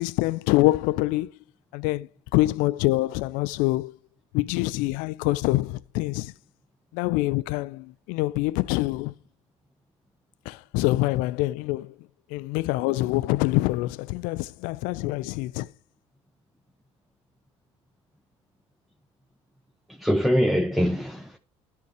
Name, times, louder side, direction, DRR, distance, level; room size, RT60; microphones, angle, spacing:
voice 1, 0.0-1.3 1.7-3.9 4.3-6.3 6.9-9.1 10.5-11.9 12.3-15.7, left 19 dB, 55° left, 0.4 m, -25 dB
voice 2, 19.9-21.4, equal, ahead, 0.8 m, -23 dB
11.5 x 4.6 x 4.9 m
figure-of-eight pair, 55°, 16 cm